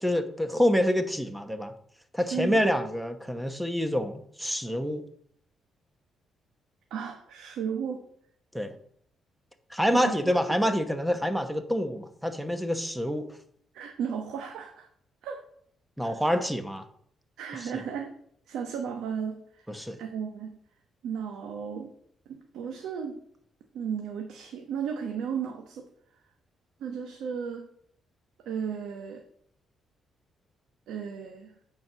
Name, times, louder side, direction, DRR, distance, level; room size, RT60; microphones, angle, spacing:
voice 1, 0.0-1.7 2.1-5.0 8.5-8.7 9.7-13.3 16.0-16.8 19.7-20.0, equal, 5° right, 9 dB, 1.1 m, -27 dB
voice 2, 6.9-8.0 9.9-10.3 13.7-14.9 15.2-15.4 16.0-16.2 17.4-18.1 18.5-20.6 21.0-21.9 22.3-23.2 23.7-25.8 26.8-27.7 28.4-29.2 30.9-31.5, right 7 dB, 85° right, 3 dB, 1.0 m, -34 dB
8.5 x 4.7 x 6.2 m, 0.65 s
cardioid pair, 90°, 0 cm